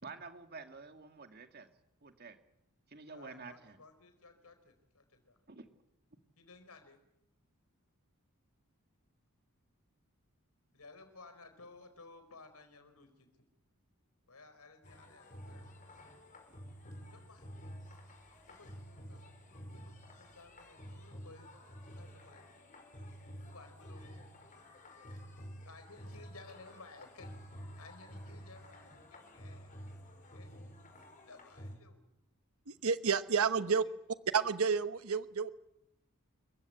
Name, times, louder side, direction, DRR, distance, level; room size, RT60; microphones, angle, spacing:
voice 1, 0.0-1.7 2.0-2.4 2.9-3.8 5.5-5.7, right 4 dB, 45° right, 7 dB, 2.2 m, -49 dB
voice 2, 3.1-5.4 6.4-7.0 10.7-13.3 14.3-16.0 17.1-17.8 18.5-19.9 20.1-21.5 21.9-22.5 23.5-24.2 25.4-27.4 27.7-29.7 30.3-30.6 31.2-32.0 33.4-33.9, left 3 dB, 80° left, 9 dB, 4.5 m, -57 dB
sound 1, 14.8-31.8, equal, 35° left, 5.2 m, -51 dB
voice 3, 32.7-33.8 34.3-35.5, right 6 dB, 70° right, 12 dB, 1.1 m, -30 dB
28.0 x 15.5 x 9.6 m, 0.86 s
head